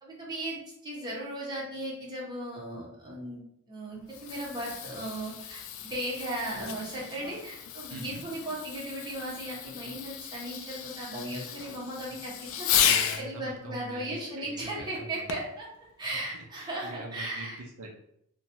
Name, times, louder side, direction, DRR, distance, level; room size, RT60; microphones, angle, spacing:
voice 1, 0.0-3.4 3.7-12.7 13.2-15.7 16.0-17.6, right 1 dB, 20° right, -6 dB, 0.9 m, -37 dB
Fireworks, 3.9-13.3 15.3-15.6 16.3-16.4, left 9 dB, 65° left, 0.3 m, -33 dB
voice 2, 7.9-8.2 12.8-15.3 16.3-16.4 16.8-17.9, right 1 dB, 90° right, 1 dB, 0.5 m, -43 dB
3.0 x 2.2 x 2.7 m, 0.73 s
head